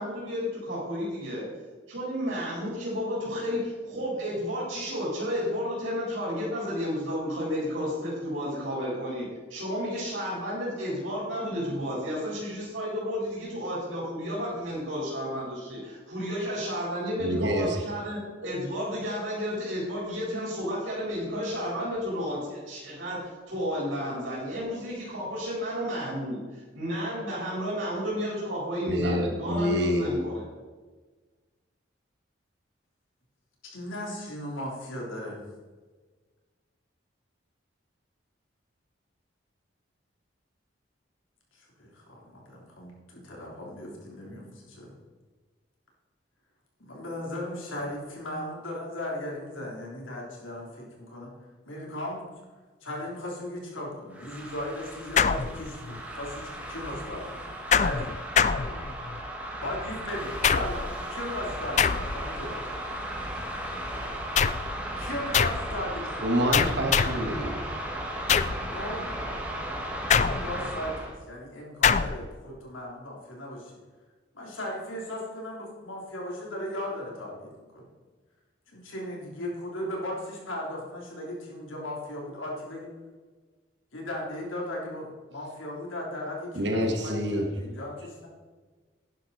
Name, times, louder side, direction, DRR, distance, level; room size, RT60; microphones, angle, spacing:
voice 1, 0.0-1.5 1.9-9.2 9.5-30.4, equal, 85° right, -6 dB, 4.3 m, -32 dB
voice 2, 17.2-17.8 28.9-30.0 66.2-67.6 86.5-87.5, equal, 60° right, 2 dB, 1.7 m, -27 dB
voice 3, 33.7-35.5 41.5-44.9 46.8-51.3 51.7-52.3 52.8-58.1 59.6-62.8 65.0-65.9 68.7-69.1 70.1-73.7 74.3-77.8 78.7-82.9 83.9-88.3, left 1 dB, 90° left, -2 dB, 3.5 m, -37 dB
sound 1, 54.1-71.1, right 1 dB, 5° right, 1.6 m, -36 dB
sound 2, 55.2-56.0 57.7-59.2 60.4-61.0 61.8-62.4 64.3-64.8 65.3-65.7 66.5-67.3 68.3-68.7 70.1-70.7 71.8-72.3, left 7 dB, 35° left, 0.4 m, -24 dB
11.5 x 10.5 x 4.2 m, 1.4 s
head